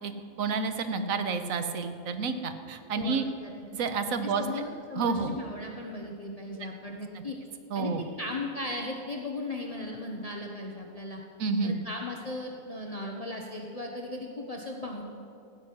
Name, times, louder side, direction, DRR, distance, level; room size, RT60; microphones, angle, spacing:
voice 1, 0.4-3.3 3.7-4.4 4.9-5.3 7.1-7.2 7.7-8.0 11.4-11.8, right 4 dB, 85° right, 8 dB, 1.3 m, -29 dB
voice 2, 2.9-3.6 4.2-7.4 7.7-7.9 8.2-11.2 11.6-15.0, left 2 dB, 30° left, 0 dB, 1.0 m, -37 dB
15.0 x 6.0 x 9.4 m, 2.5 s
omnidirectional pair, 1.4 m